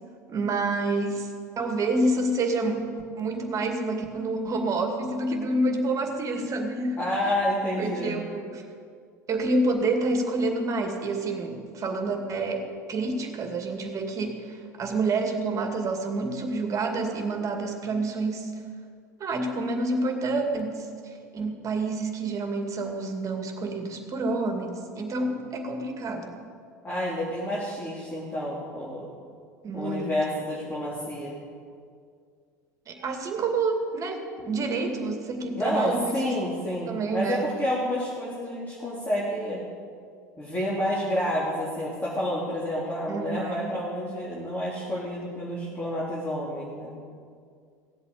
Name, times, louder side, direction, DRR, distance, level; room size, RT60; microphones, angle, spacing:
voice 1, 0.3-2.9 3.2-7.3 7.8-8.6 9.3-18.5 19.2-26.4 29.6-30.2 32.9-36.4 36.9-37.5 43.1-43.8, right 2 dB, 35° right, 4 dB, 2.3 m, -28 dB
voice 2, 7.0-8.2 26.8-29.1 29.7-31.4 35.5-39.6 40.4-46.9, left 1 dB, 20° left, -7 dB, 3.5 m, -29 dB
16.5 x 8.2 x 8.4 m, 2.2 s
figure-of-eight pair, 70°, 9 cm